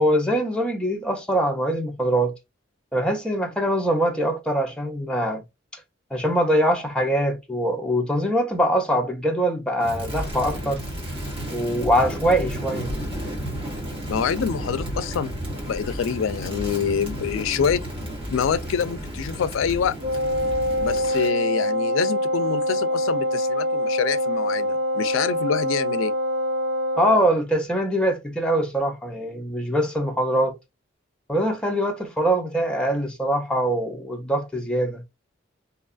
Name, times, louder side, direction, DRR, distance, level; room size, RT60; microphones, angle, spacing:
voice 1, 0.0-2.3 2.9-5.4 6.1-10.8 11.5-12.9 27.0-30.6 31.3-35.0, equal, 5° left, 0.5 m, -23 dB
Crackle, 9.8-21.4, equal, 25° right, 1.3 m, -32 dB
voice 2, 14.1-15.3 15.7-17.9 18.3-19.9 20.8-26.1, left 7 dB, 80° left, 0.3 m, -26 dB
Wind instrument woodwind instrument, 20.0-27.3, equal, 55° right, 0.7 m, -24 dB
2.8 x 2.3 x 2.3 m
head